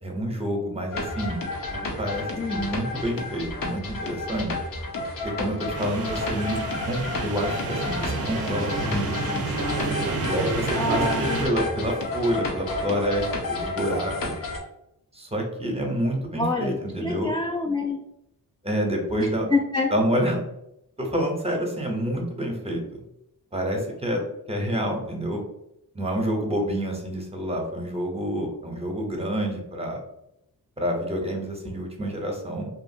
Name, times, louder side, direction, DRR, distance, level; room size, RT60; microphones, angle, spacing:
voice 1, 0.0-1.4 1.7-2.2 2.5-4.5 5.2-6.6 6.8-9.3 10.2-14.3 15.1-17.4 18.6-19.5 19.9-20.4 21.0-23.0 23.5-24.2 24.5-25.4 25.9-30.0 30.8-32.7, equal, 15° right, 1 dB, 0.7 m, -28 dB
sound 1, 0.9-14.6, left 2 dB, 60° left, 0.7 m, -31 dB
voice 2, 2.4-2.7 10.7-11.5 16.4-18.0 19.2-19.9, left 3 dB, 15° left, 0 dB, 0.3 m, -27 dB
sound 2, 5.7-11.5, right 3 dB, 40° right, 0.5 m, -29 dB
2.7 x 2.4 x 2.7 m, 0.81 s
cardioid pair, 65°, 37 cm